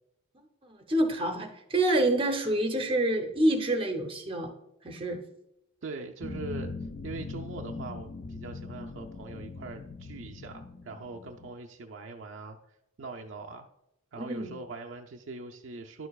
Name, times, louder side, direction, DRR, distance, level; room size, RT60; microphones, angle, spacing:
voice 1, 0.7-4.5 4.8-5.2 14.2-14.5, right 1 dB, 25° right, 4 dB, 0.7 m, -27 dB
voice 2, 5.8-6.7 7.0-12.6 13.0-13.7 14.1-16.1, right 3 dB, 60° right, 2 dB, 0.5 m, -42 dB
sound 1, 6.2-11.5, left 3 dB, 35° left, 0.3 m, -40 dB
10.5 x 6.7 x 2.3 m, 0.84 s
head